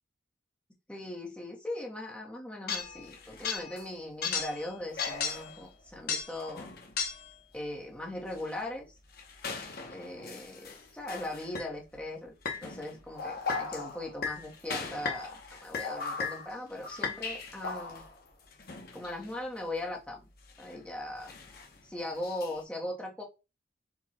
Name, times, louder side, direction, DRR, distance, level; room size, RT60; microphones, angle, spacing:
voice 1, 0.9-6.7 7.5-8.9 9.9-12.3 12.6-18.0 18.9-20.3 20.6-21.3 21.8-23.2, left 1 dB, 5° left, -2 dB, 0.9 m, -39 dB
sound 1, 2.7-3.9 4.2-7.4 8.3-8.5 9.1-11.7 12.5-18.2 18.5-19.3 20.4-20.7 21.2-22.6, left 5 dB, 50° left, 0.9 m, -37 dB
4.6 x 2.3 x 4.2 m, 0.29 s
head